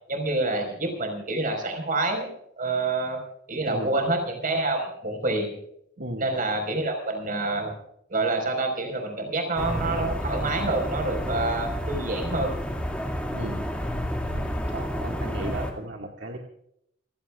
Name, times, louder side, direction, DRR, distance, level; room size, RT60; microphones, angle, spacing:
voice 1, 0.1-2.3 2.6-3.2 3.5-5.5 6.1-7.7 8.1-12.5, right 2 dB, 50° right, 3 dB, 4.8 m, -27 dB
voice 2, 6.0-6.3 13.3-13.8 14.3-16.4, right 1 dB, 70° right, 1 dB, 1.9 m, -36 dB
sound 1, 9.6-15.7, equal, 5° left, 2.3 m, -30 dB
28.5 x 16.0 x 2.4 m, 0.73 s
head